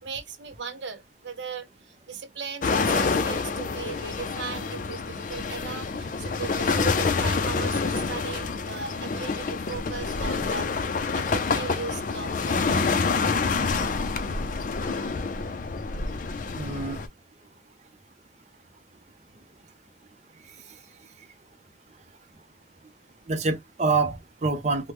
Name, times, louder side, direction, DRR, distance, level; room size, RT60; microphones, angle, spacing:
voice 1, 0.0-10.7 11.1-13.1, right 5 dB, 75° right, 0.8 m, -38 dB
sound 1, 2.6-17.1, left 4 dB, 45° left, 0.4 m, -27 dB
voice 2, 16.6-17.0 23.3-24.9, right 4 dB, 35° right, 0.5 m, -26 dB
3.3 x 2.1 x 3.0 m
head